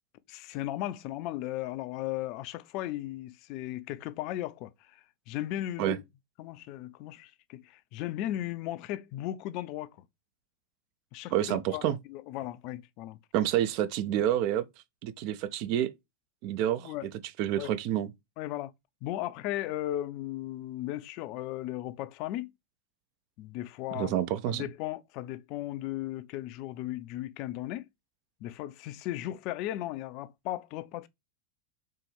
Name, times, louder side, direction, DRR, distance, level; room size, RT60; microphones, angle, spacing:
voice 1, 0.3-6.0 6.4-10.1 11.1-13.2 16.8-17.1 17.6-17.7 18.4-18.7 19.0-22.5 23.4-24.1 24.5-27.9 28.4-31.1, left 14 dB, 40° left, 0.4 m, -36 dB
voice 2, 11.3-12.0 13.3-14.6 15.0-15.9 16.4-17.1 17.4-18.1 23.9-24.6, right 11 dB, 45° right, 0.5 m, -28 dB
4.4 x 3.7 x 3.2 m
figure-of-eight pair, 90°, 0 cm